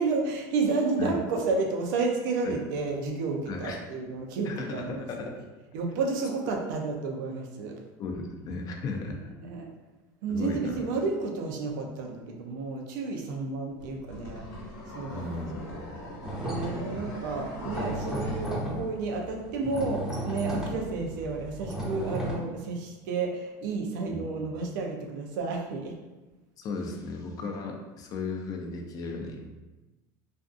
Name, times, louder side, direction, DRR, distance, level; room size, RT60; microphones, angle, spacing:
voice 1, 0.0-5.3 5.7-7.8 9.4-9.7 10.2-14.4 14.9-15.8 16.4-25.9, right 4 dB, 80° right, 1 dB, 0.5 m, -31 dB
voice 2, 3.5-3.8 4.5-5.3 6.4-6.5 8.0-9.3 10.3-10.8 15.1-15.6 15.9-16.0 16.9-17.0 24.1-24.2 26.6-29.5, left 3 dB, 40° left, 2 dB, 0.4 m, -35 dB
sound 1, 13.8-18.5, left 1 dB, 90° left, 0.8 m, -41 dB
sound 2, 16.2-17.0 17.3-22.4, equal, 5° right, 0.6 m, -34 dB
2.5 x 2.4 x 2.4 m, 1.1 s
supercardioid pair, 125°, 10 cm